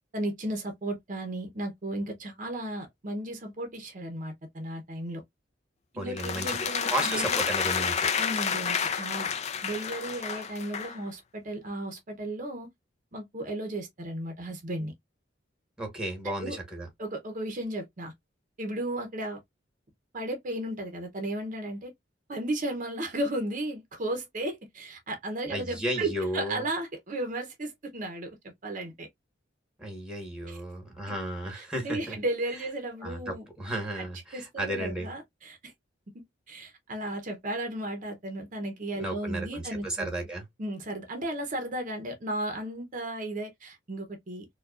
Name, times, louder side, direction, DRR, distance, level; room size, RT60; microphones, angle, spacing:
voice 1, 0.1-5.2 5.9-7.4 8.2-9.3 9.6-12.7 13.1-14.9 16.4-16.6 17.0-18.1 18.6-19.4 20.1-21.9 22.3-28.3 28.6-29.1 30.5-30.6 31.5-33.5 34.0-34.1 34.3-35.6 36.5-40.1 40.6-44.5, right 1 dB, 45° right, 0.7 m, -34 dB
voice 2, 6.0-8.1 15.8-16.9 25.5-26.7 29.8-32.2 33.0-35.1 39.0-40.5, right 1 dB, 5° right, 1.2 m, -34 dB
sound 1, 6.2-11.0, left 7 dB, 35° left, 0.5 m, -30 dB
4.5 x 2.3 x 2.4 m
head